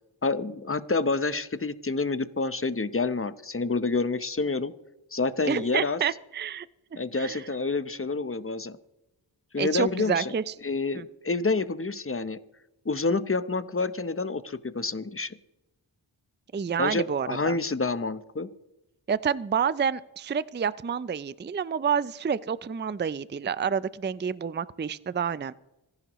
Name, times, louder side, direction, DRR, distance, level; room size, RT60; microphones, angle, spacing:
voice 1, 0.2-4.7 5.1-6.0 6.9-8.8 9.5-10.3 10.6-12.4 12.9-15.3 16.8-18.5, left 3 dB, 30° left, 14 dB, 0.8 m, -28 dB
voice 2, 5.5-6.7 7.2-7.4 9.6-10.5 10.9-11.1 16.5-17.6 19.1-25.5, right 7 dB, 25° right, 18 dB, 0.4 m, -28 dB
26.5 x 11.0 x 3.0 m, 0.97 s
wide cardioid pair, 45°, 47 cm